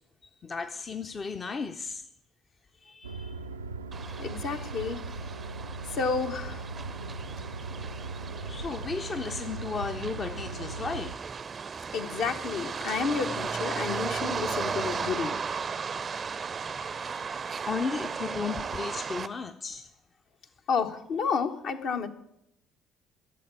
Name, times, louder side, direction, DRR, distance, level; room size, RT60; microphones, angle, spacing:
voice 1, 0.2-2.0 2.8-3.3 4.0-4.1 4.5-4.7 8.4-11.2 16.7-19.9, left 5 dB, 35° left, 0.7 m, -35 dB
sound 1, 3.0-11.1, right 3 dB, 80° right, 0.4 m, -39 dB
sound 2, 3.9-19.3, right 5 dB, 35° right, 0.5 m, -36 dB
voice 2, 4.2-5.0 6.0-6.6 11.9-15.4 20.7-22.1, left 5 dB, 55° left, 1.1 m, -30 dB
12.5 x 7.3 x 9.4 m
figure-of-eight pair, 50°, 0 cm